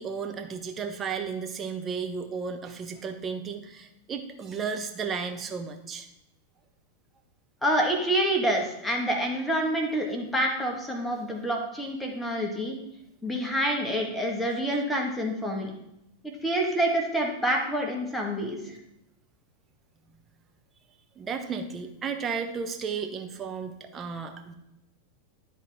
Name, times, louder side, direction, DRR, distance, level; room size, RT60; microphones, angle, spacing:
voice 1, 0.0-6.1 21.2-24.5, right 6 dB, 20° right, 5 dB, 1.0 m, -34 dB
voice 2, 7.6-12.8 13.2-15.7 16.2-18.8, right 1 dB, 5° left, 0 dB, 1.6 m, -27 dB
12.5 x 4.2 x 3.6 m, 0.85 s
figure-of-eight pair, 90°, 0 cm